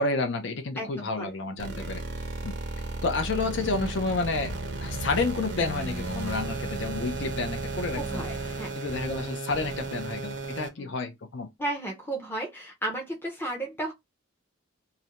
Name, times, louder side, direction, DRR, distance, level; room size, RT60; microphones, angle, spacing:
voice 1, 0.0-2.0 2.4-2.5 3.0-4.5 4.8-8.2 8.7-11.5, left 3 dB, 65° left, 0.5 m, -30 dB
voice 2, 0.8-1.3 1.8-1.9 8.0-8.8 10.8-10.9 11.6-13.9, right 1 dB, 10° left, 0.5 m, -34 dB
sound 1, 1.6-10.7, right 2 dB, 55° right, 0.5 m, -34 dB
2.4 x 2.1 x 2.8 m
head